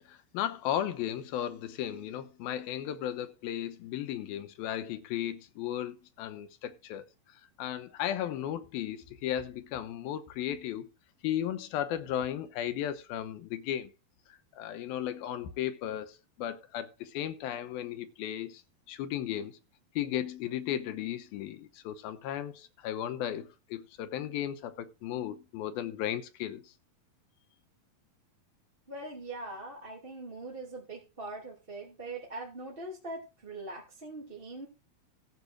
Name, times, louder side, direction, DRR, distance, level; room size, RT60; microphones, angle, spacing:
voice 1, 0.0-7.0 7.6-10.9 11.2-13.9 14.6-18.6 18.9-19.6 20.0-26.7, left 11 dB, 90° left, 2.9 m, -35 dB
voice 2, 28.9-34.7, right 2 dB, 15° right, 2.6 m, -42 dB
14.5 x 5.2 x 6.2 m
omnidirectional pair, 4.2 m